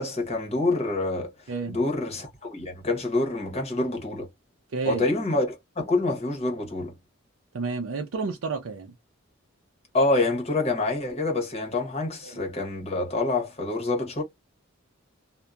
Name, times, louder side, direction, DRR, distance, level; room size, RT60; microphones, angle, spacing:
voice 1, 0.0-4.3 4.9-7.0 9.9-14.2, left 2 dB, 30° left, 1.0 m, -27 dB
voice 2, 1.5-1.8 4.7-5.1 7.5-8.9 12.2-12.4, right 4 dB, 70° right, 0.5 m, -31 dB
2.7 x 2.1 x 2.3 m
head